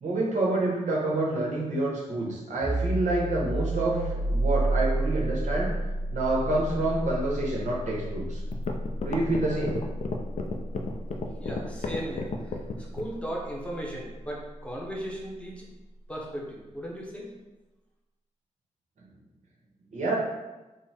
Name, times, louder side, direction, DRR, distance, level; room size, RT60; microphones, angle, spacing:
voice 1, 0.0-5.7 6.1-8.4 9.0-9.8 19.9-20.2, right 2 dB, 70° right, -3 dB, 1.0 m, -27 dB
sound 1, 2.6-14.0, right 1 dB, 35° right, 0.8 m, -31 dB
sound 2, 8.1-8.2 8.5-13.2, left 4 dB, 70° left, 0.4 m, -32 dB
voice 2, 11.4-15.6 16.1-17.3, equal, 10° left, -3 dB, 0.8 m, -37 dB
3.8 x 2.0 x 4.2 m, 1.1 s
cardioid pair, 90°, 13 cm